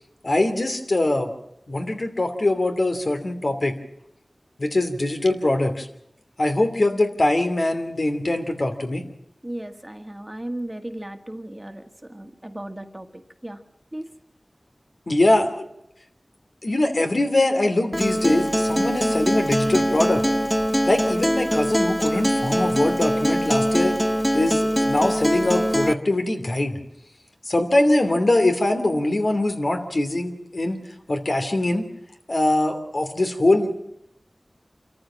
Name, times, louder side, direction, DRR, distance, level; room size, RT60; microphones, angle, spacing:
voice 1, 0.2-1.3 1.7-3.7 4.6-5.9 6.4-9.0 15.1-15.6 16.6-20.2 20.9-24.0 24.3-26.7 27.5-30.8 31.1-31.9 32.3-33.8, left 1 dB, 65° left, 5 dB, 2.8 m, -22 dB
voice 2, 9.4-13.6 13.9-14.1, right 1 dB, 25° right, 7 dB, 1.7 m, -36 dB
Acoustic guitar, 17.9-25.9, equal, ahead, 0.7 m, -22 dB
26.5 x 14.5 x 7.5 m, 0.78 s
wide cardioid pair, 45°, 0 cm